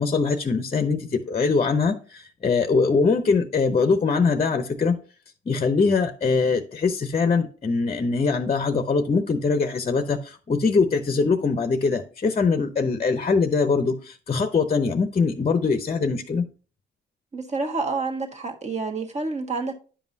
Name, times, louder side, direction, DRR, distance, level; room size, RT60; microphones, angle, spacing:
voice 1, 0.0-5.0 5.5-16.5, left 4 dB, 30° left, 0.7 m, -22 dB
voice 2, 17.3-19.7, right 3 dB, 35° right, 1.5 m, -28 dB
10.0 x 5.3 x 2.7 m
cardioid pair, 90°, 20 cm